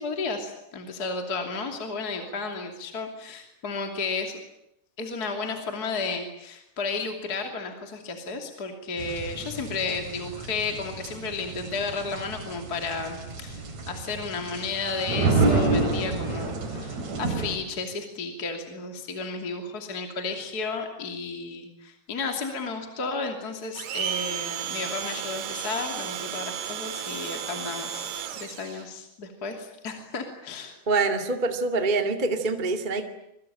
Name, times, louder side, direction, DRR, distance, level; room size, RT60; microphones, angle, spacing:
voice 1, 0.0-4.4 5.0-30.8, left 4 dB, 25° left, 4 dB, 2.7 m, -33 dB
sound 1, 9.0-17.6, right 3 dB, 45° right, 4.7 m, -29 dB
Domestic sounds home sounds, 23.8-28.8, right 9 dB, 85° right, 3.7 m, -33 dB
voice 2, 30.9-33.0, right 3 dB, 20° right, 5 dB, 1.4 m, -25 dB
26.5 x 23.0 x 9.0 m, 0.83 s
omnidirectional pair, 4.5 m